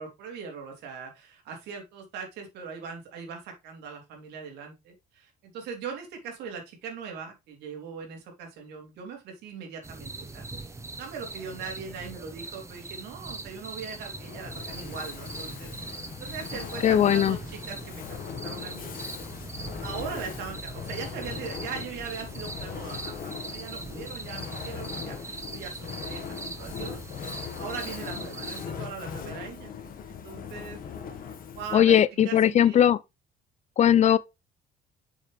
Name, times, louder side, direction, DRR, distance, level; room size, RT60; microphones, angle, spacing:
voice 1, 0.0-10.5 10.9-15.7 16.2-19.0 19.8-29.7 30.1-30.8 31.5-32.0 32.2-32.9, right 6 dB, 80° right, 3.2 m, -40 dB
sound 1, 9.8-28.7, right 3 dB, 15° right, 0.9 m, -41 dB
Fire, 14.0-31.9, left 7 dB, 60° left, 1.6 m, -40 dB
voice 2, 16.8-17.4 31.7-33.0 33.8-34.2, left 10 dB, 40° left, 0.4 m, -19 dB
7.5 x 6.5 x 3.3 m
cardioid pair, 110°, 17 cm